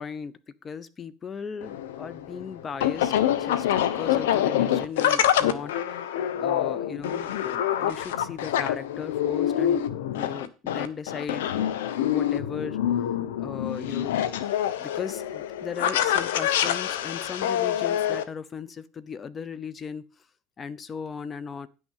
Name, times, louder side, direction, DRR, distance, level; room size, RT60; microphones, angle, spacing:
voice 1, 0.0-3.1 3.4-9.8 10.1-11.7 12.1-12.8 13.4-14.3 14.8-20.0 20.6-21.7, left 6 dB, 30° left, 17 dB, 0.8 m, -37 dB
sound 1, 1.6-18.2, left 10 dB, 90° left, 0.9 m, -26 dB
10.0 x 6.4 x 5.6 m, 0.33 s
supercardioid pair, 110°, 0 cm